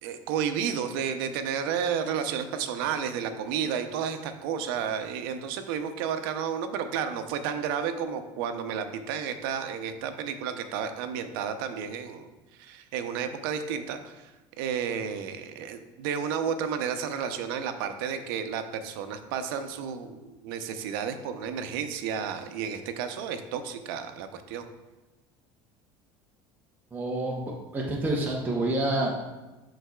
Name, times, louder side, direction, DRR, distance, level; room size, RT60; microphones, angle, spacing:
voice 1, 0.0-12.3 12.6-14.3 14.6-24.7, right 7 dB, 85° right, 8 dB, 0.6 m, -32 dB
voice 2, 26.9-29.2, right 1 dB, 15° right, -2 dB, 0.8 m, -28 dB
11.0 x 4.0 x 2.3 m, 1.1 s
supercardioid pair, 125°, 11 cm